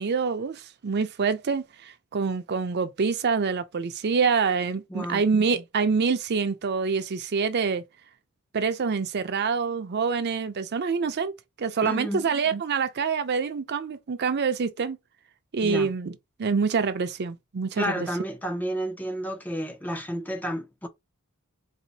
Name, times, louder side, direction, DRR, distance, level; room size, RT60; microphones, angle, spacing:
voice 1, 0.0-7.8 8.5-11.3 11.6-15.0 15.5-18.1, right 5 dB, 50° right, 0.5 m, -26 dB
voice 2, 4.9-5.2 11.8-12.3 15.6-15.9 17.8-20.9, equal, 10° left, 0.4 m, -31 dB
4.1 x 2.5 x 2.7 m
head